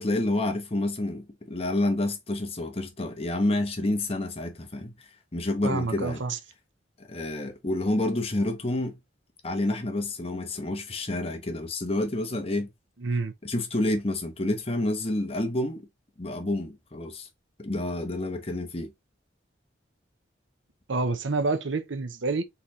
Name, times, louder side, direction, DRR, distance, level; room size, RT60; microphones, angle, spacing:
voice 1, 0.0-4.9 5.3-6.2 7.0-9.0 9.4-12.7 13.4-15.8 16.2-17.3 17.6-18.9, left 1 dB, 30° left, 1.0 m, -29 dB
voice 2, 5.6-6.4 13.0-13.3 20.9-22.4, right 3 dB, 80° right, 0.8 m, -28 dB
4.1 x 4.0 x 3.0 m
head